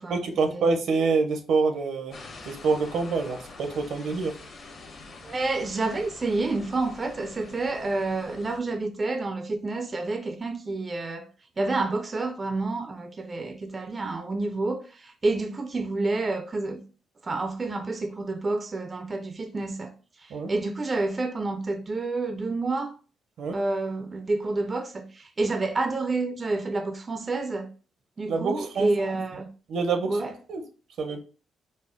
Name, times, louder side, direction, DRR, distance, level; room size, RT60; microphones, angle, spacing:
voice 1, 0.1-2.2 2.4-4.4 20.3-20.5 23.4-23.5 28.3-29.2 29.7-30.2 30.5-30.6 31.0-31.2, right 4 dB, 75° right, 0.7 m, -26 dB
sound 1, 2.1-8.6, left 3 dB, 55° left, 1.0 m, -45 dB
voice 2, 5.2-11.3 11.6-16.8 17.2-19.9 20.5-22.9 23.5-27.7 28.2-29.5 30.1-30.3, right 3 dB, 30° right, 0.4 m, -29 dB
4.1 x 2.0 x 3.5 m
cardioid pair, 100°, 0 cm